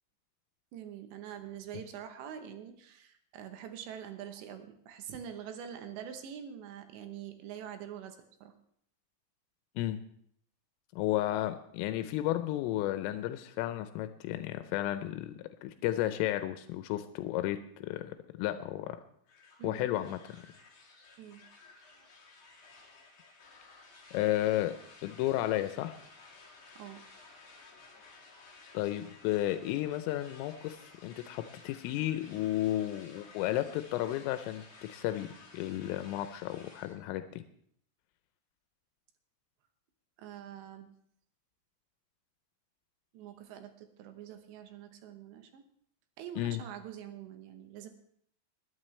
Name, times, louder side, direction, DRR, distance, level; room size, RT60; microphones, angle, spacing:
voice 1, 0.7-8.5 19.6-19.9 21.2-21.4 22.0-22.1 26.7-27.0 40.2-40.9 43.1-45.6 46.2-47.9, right 9 dB, 75° right, 7 dB, 3.0 m, -45 dB
voice 2, 10.9-19.0 19.6-20.2 24.1-24.7 25.0-26.0 28.7-34.6 34.9-35.3 35.5-37.4 46.4-46.6, left 14 dB, 85° left, 9 dB, 3.3 m, -33 dB
sound 1, 19.3-37.0, left 3 dB, 30° left, 3.2 m, -55 dB
20.5 x 12.0 x 3.3 m, 0.66 s
omnidirectional pair, 5.8 m